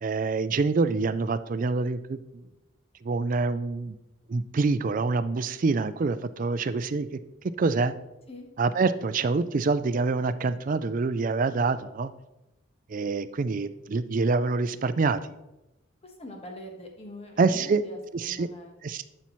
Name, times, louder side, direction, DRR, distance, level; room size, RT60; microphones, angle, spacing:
voice 1, 0.0-2.4 3.0-3.9 4.3-7.1 7.6-7.9 8.6-12.1 12.9-15.2 17.4-17.8 18.1-18.5 18.8-19.0, right 4 dB, 40° right, 12 dB, 0.4 m, -26 dB
voice 2, 16.0-18.8, left 1 dB, 30° left, 2 dB, 1.3 m, -43 dB
11.5 x 5.6 x 3.1 m, 0.94 s
head